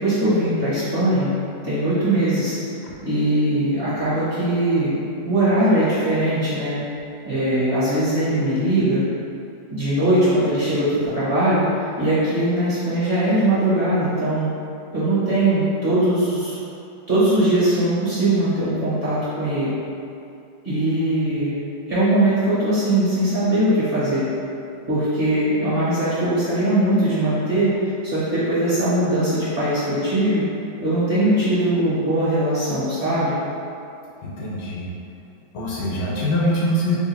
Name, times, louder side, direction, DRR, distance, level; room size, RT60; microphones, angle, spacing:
voice 1, 0.0-1.3 1.6-2.6 3.0-4.9 5.2-6.8 7.2-9.0 9.7-14.5 14.9-16.6 17.1-19.7 20.6-21.6 21.9-24.2 24.9-30.4 30.8-33.3, right 1 dB, 40° right, -12 dB, 0.9 m, -20 dB
voice 2, 34.2-34.9 35.5-37.0, left 1 dB, 70° left, -4 dB, 1.2 m, -23 dB
3.0 x 2.5 x 4.1 m, 2.6 s
omnidirectional pair, 2.0 m